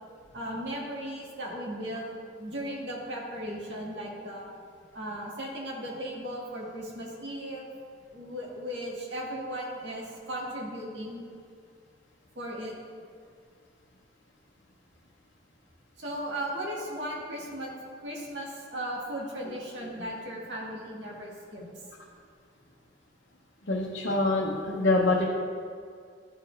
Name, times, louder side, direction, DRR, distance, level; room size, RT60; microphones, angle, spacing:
voice 1, 0.3-2.1 2.4-4.5 4.9-7.6 8.1-11.2 12.4-12.7 16.0-17.7 18.0-21.6, equal, 80° right, -3 dB, 1.8 m, -36 dB
voice 2, 23.7-25.2, left 2 dB, 80° left, -3 dB, 0.8 m, -25 dB
12.0 x 4.5 x 3.3 m, 2.2 s
head